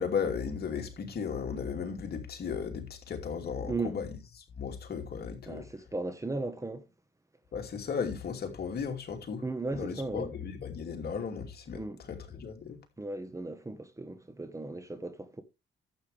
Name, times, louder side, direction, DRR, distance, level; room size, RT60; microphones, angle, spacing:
voice 1, 0.0-4.1 4.6-5.7 7.5-9.4 9.7-11.8 12.1-12.8, left 6 dB, 55° left, 2.8 m, -35 dB
voice 2, 3.7-4.0 5.5-6.9 9.4-10.3 11.7-12.0 13.0-15.4, right 3 dB, 15° right, 1.4 m, -36 dB
11.5 x 8.1 x 3.4 m
cardioid pair, 90°, 20 cm